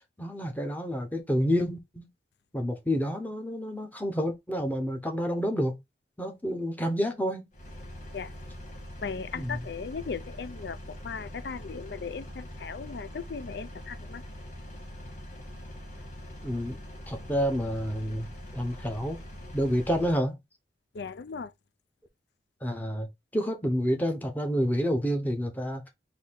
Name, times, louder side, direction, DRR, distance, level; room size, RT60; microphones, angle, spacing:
voice 1, 0.2-2.1 2.5-5.8 6.2-7.5 9.3-9.6 16.4-16.8 17.1-18.3 18.5-19.2 19.5-20.4 22.6-25.9, equal, 10° left, 0.9 m, -29 dB
Engine, 7.5-20.2, left 1 dB, 45° left, 1.8 m, -43 dB
voice 2, 9.0-14.2 20.9-21.5, left 5 dB, 70° left, 0.5 m, -37 dB
4.1 x 2.8 x 4.1 m
head